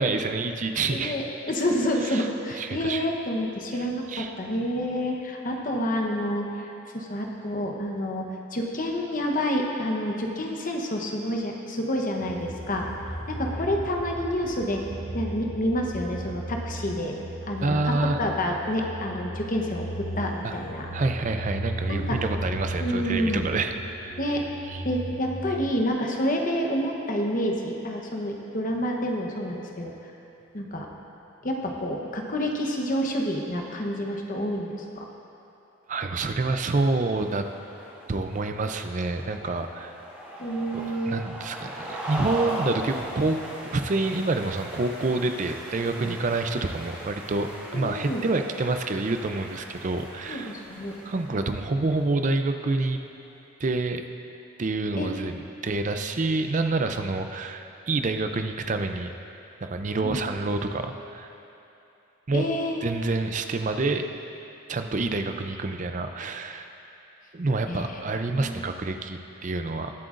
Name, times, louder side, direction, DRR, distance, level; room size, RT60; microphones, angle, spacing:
voice 1, 0.0-1.1 2.0-2.3 2.6-3.1 4.1-4.3 17.6-18.2 20.4-20.5 20.9-24.2 24.7-24.8 35.9-37.5 38.1-40.0 40.7-43.4 43.7-50.6 51.1-53.0 53.6-54.0 54.6-59.1 59.6-61.3 62.3-62.5 62.8-64.0 64.7-66.7 67.3-69.9, right 3 dB, 35° right, 7 dB, 0.4 m, -27 dB
voice 2, 0.9-6.7 6.9-12.8 13.3-14.8 15.1-17.2 17.5-20.9 21.9-22.2 22.8-23.5 24.2-24.5 24.8-29.9 30.5-30.9 31.4-35.0 40.4-41.2 46.0-46.1 47.7-48.2 50.3-50.9 55.0-55.1 60.0-60.2 62.3-62.8 67.7-68.0 68.3-68.6, equal, 40° left, 1 dB, 0.9 m, -28 dB
sound 1, 12.2-25.6, right 1 dB, 75° left, 1.8 m, -36 dB
sound 2, 36.5-52.2, right 1 dB, 5° right, 1.9 m, -39 dB
21.5 x 7.7 x 2.5 m, 2.9 s
head